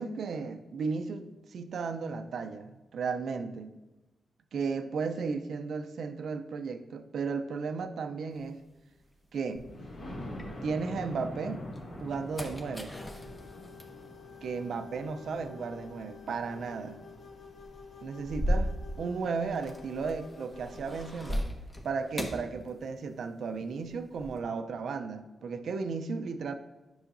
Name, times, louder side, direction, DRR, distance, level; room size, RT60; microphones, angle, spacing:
voice 1, 0.0-3.8 4.5-8.6 9.3-9.7 10.6-11.6 12.0-13.0 14.4-17.0 18.0-21.5 21.8-26.5, right 5 dB, 75° right, 9 dB, 0.5 m, -35 dB
sound 1, 8.3-11.1 11.6-23.3 23.6-24.4, equal, 25° left, 1.0 m, -39 dB
Thunder, 9.5-19.3 19.8-19.9 20.3-20.4 20.7-20.8, left 1 dB, 75° left, 2.4 m, -46 dB
sound 2, 12.7-21.1, left 6 dB, 60° left, 0.6 m, -51 dB
10.0 x 5.6 x 2.6 m, 1.1 s
cardioid pair, 95°, 0 cm